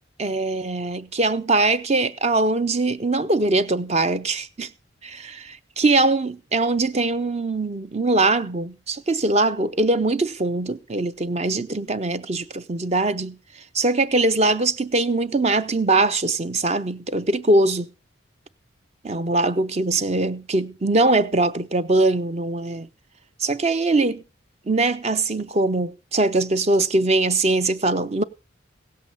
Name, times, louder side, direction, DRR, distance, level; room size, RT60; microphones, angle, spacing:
voice 1, 0.2-4.7 5.0-13.4 13.7-17.9 19.0-22.9 23.4-24.2 24.7-28.2, right 2 dB, 30° right, 0.6 m, -22 dB
17.0 x 7.8 x 5.5 m
head